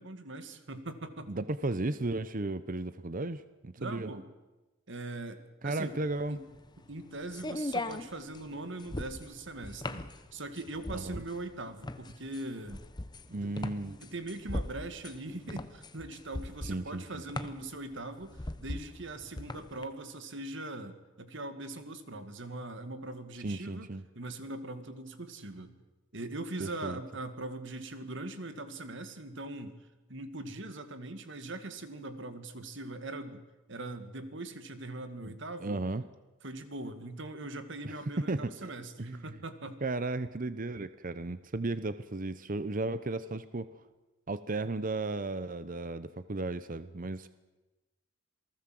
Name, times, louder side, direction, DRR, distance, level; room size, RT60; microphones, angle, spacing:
voice 1, 0.0-1.3 3.8-4.3 4.9-6.0 6.3-6.4 6.9-12.8 13.3-23.9 24.2-25.7 26.1-29.8 30.1-33.4 33.7-35.8 36.4-39.8, right 2 dB, 60° right, 9 dB, 2.2 m, -41 dB
voice 2, 1.3-4.1 5.6-6.4 10.9-11.2 13.3-13.9 16.7-17.2 23.4-24.0 26.6-27.0 35.2-35.3 35.6-36.0 37.8-37.9 38.3-38.7 39.0-39.2 39.8-43.8 44.3-47.3, right 2 dB, 40° right, 13 dB, 0.8 m, -35 dB
sound 1, 6.0-19.8, left 1 dB, 20° left, 1.0 m, -40 dB
28.0 x 19.0 x 7.7 m, 1.1 s
head